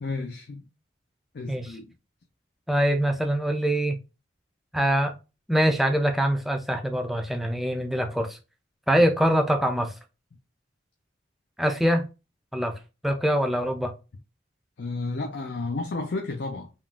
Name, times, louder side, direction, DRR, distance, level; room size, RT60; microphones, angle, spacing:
voice 1, 0.0-0.7 1.3-1.9 14.8-16.7, left 3 dB, 60° left, 0.5 m, -32 dB
voice 2, 2.7-4.0 4.7-5.2 5.5-8.4 8.9-9.9 11.6-12.1 12.5-12.8 13.0-13.9, equal, ahead, 0.4 m, -24 dB
3.6 x 2.4 x 2.3 m
head